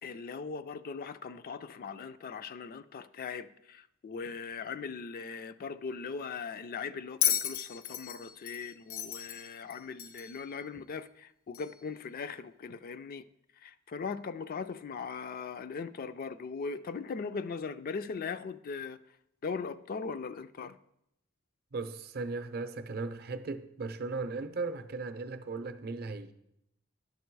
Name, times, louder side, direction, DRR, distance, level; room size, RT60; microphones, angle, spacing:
voice 1, 0.0-13.2 13.6-19.0 19.4-20.8, left 5 dB, 45° left, 0.3 m, -39 dB
Bell, 7.2-10.4 11.5-11.7, left 10 dB, 80° left, 0.8 m, -33 dB
voice 2, 21.7-26.3, right 3 dB, 50° right, 0.6 m, -37 dB
10.5 x 6.8 x 4.6 m
head